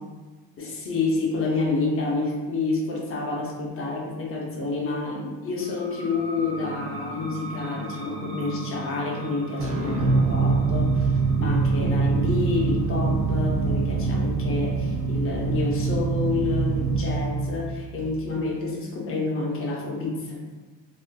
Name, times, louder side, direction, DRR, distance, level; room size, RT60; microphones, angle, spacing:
voice 1, 0.6-11.1 11.4-20.4, left 3 dB, 30° left, -2 dB, 0.5 m, -28 dB
sound 1, 5.6-16.9, right 1 dB, 60° right, 0.7 m, -40 dB
sound 2, 9.6-18.3, right 4 dB, 35° right, 0.4 m, -24 dB
3.4 x 2.4 x 2.2 m, 1.3 s
cardioid pair, 150°, 47 cm